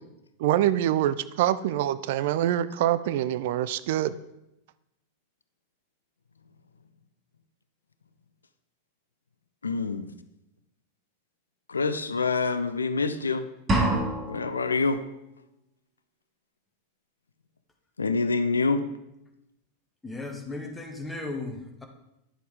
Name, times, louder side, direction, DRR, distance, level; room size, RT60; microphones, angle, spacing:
voice 1, 0.4-4.2, right 12 dB, 50° right, 15 dB, 0.3 m, -25 dB
voice 2, 9.6-10.1 11.7-13.4 14.3-15.0 18.0-18.8, left 4 dB, 75° left, 12 dB, 0.5 m, -26 dB
sound 1, 13.7-14.7, right 1 dB, 20° right, 2.0 m, -25 dB
voice 3, 20.0-21.9, left 2 dB, 10° left, 3 dB, 1.4 m, -36 dB
10.0 x 6.8 x 4.8 m, 0.87 s
figure-of-eight pair, 90°, 0 cm